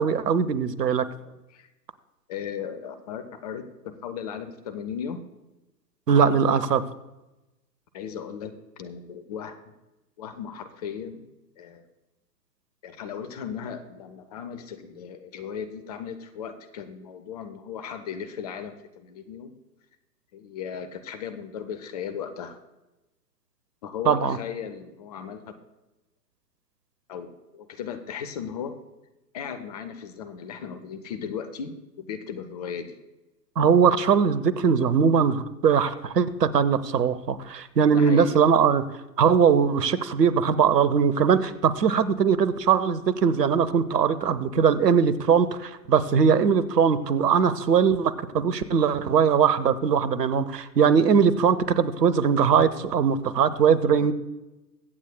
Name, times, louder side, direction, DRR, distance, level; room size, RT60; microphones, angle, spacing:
voice 1, 0.0-1.0 6.1-6.8 24.1-24.4 33.6-38.8 39.2-54.1, right 6 dB, 70° right, 15 dB, 0.9 m, -21 dB
voice 2, 1.2-1.7 2.3-5.2 7.9-9.7 10.2-11.3 11.6-11.9 12.8-19.5 20.3-22.6 23.8-25.6 27.1-28.8 29.3-33.0 37.9-38.3 54.0-54.1, left 7 dB, 25° left, 10 dB, 0.6 m, -36 dB
23.0 x 8.1 x 2.2 m, 1.0 s
figure-of-eight pair, 115°, 49 cm